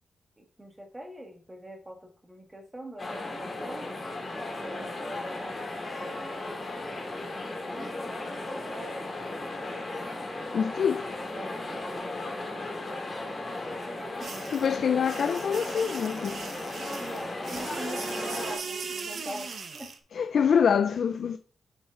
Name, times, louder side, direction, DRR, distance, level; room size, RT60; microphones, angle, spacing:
voice 1, 0.4-3.9 4.6-6.4 6.7-8.9 11.3-12.1 14.0-14.4 17.0-19.9 20.2-20.3 20.6-20.8, right 1 dB, 15° right, 1.6 m, -43 dB
sound 1, 3.0-18.6, left 2 dB, 30° left, 2.0 m, -36 dB
voice 2, 10.5-11.1 14.5-16.4 20.1-21.4, left 7 dB, 70° left, 0.4 m, -25 dB
sound 2, 14.2-20.0, right 5 dB, 60° right, 1.0 m, -39 dB
6.8 x 6.3 x 3.6 m
wide cardioid pair, 120°, 0 cm